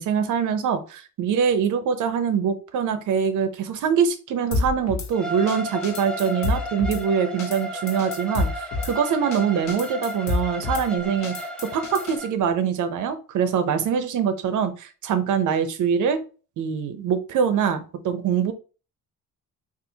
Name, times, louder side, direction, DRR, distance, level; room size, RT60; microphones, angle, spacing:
voice 1, 0.0-11.3 11.6-16.2 16.6-18.5, right 7 dB, 65° right, 10 dB, 0.7 m, -24 dB
Drum kit / Snare drum, 4.5-5.1 5.5-5.6 5.8-7.0 7.4-7.6 7.9-8.9 9.3-9.4 9.7-10.8 11.2-12.2, left 3 dB, 50° left, 0.9 m, -28 dB
Bowed string instrument, 5.1-12.3, left 1 dB, 5° left, 0.3 m, -34 dB
4.2 x 2.5 x 2.7 m, 0.35 s
cardioid pair, 120°, 33 cm